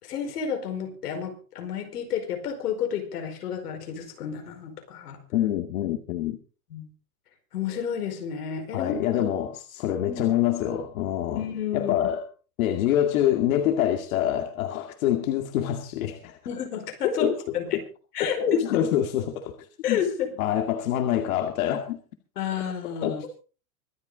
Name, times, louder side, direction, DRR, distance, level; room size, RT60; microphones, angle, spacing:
voice 1, 0.0-5.2 6.7-6.9 7.5-8.9 10.1-10.3 11.3-11.9 16.4-17.8 18.1-18.6 19.8-20.3 22.4-23.3, left 8 dB, 90° left, 5 dB, 4.9 m, -31 dB
voice 2, 5.3-6.4 8.7-11.4 11.7-12.2 12.6-16.4 17.0-17.4 18.2-20.0 20.4-22.0 23.0-23.3, left 11 dB, 65° left, 5 dB, 2.3 m, -26 dB
24.5 x 8.6 x 3.9 m, 0.36 s
supercardioid pair, 150°, 45 cm